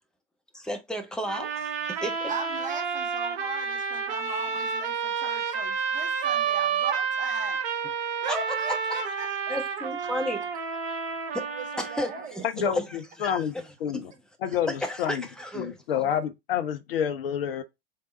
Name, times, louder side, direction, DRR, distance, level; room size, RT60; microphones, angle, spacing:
voice 1, 0.5-2.3 4.3-4.4 8.3-9.0 9.5-10.4 11.3-11.5 11.8-13.6 13.9-14.1 14.7-15.8, left 1 dB, ahead, 1.0 m, -33 dB
sound 1, 1.3-12.3, right 6 dB, 45° right, 1.3 m, -30 dB
voice 2, 2.3-7.6 8.2-9.6 10.0-10.1 11.4-12.8, right 4 dB, 25° right, 1.3 m, -38 dB
voice 3, 12.4-13.5 13.8-14.1 14.4-15.3 15.5-17.6, left 9 dB, 60° left, 0.7 m, -28 dB
3.8 x 3.4 x 4.1 m
figure-of-eight pair, 85°, 32 cm